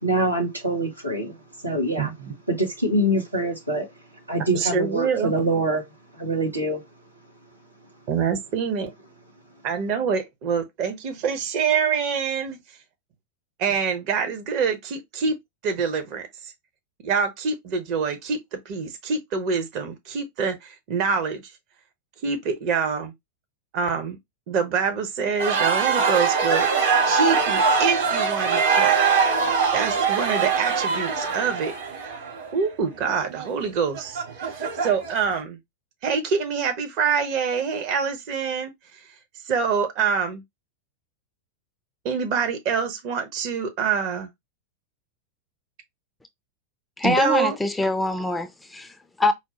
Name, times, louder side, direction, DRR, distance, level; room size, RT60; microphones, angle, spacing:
voice 1, 0.0-1.4 1.6-2.1 2.5-3.9 4.3-5.8 6.1-6.8, right 1 dB, 85° right, 1.1 m, -24 dB
voice 2, 2.0-2.3 4.5-5.3 8.1-8.9 9.6-12.6 13.6-15.4 15.6-16.5 17.0-21.4 22.2-23.1 23.7-24.2 24.5-26.7 27.0-29.0 29.7-31.7 32.5-35.6 36.0-39.0 39.5-40.4 42.0-44.3 47.0-47.6, right 6 dB, 40° right, 0.9 m, -25 dB
sound 1, 25.4-35.3, right 5 dB, 60° right, 2.4 m, -23 dB
voice 3, 47.0-49.3, left 2 dB, 10° left, 0.4 m, -24 dB
4.5 x 2.2 x 2.9 m
figure-of-eight pair, 90°, 0 cm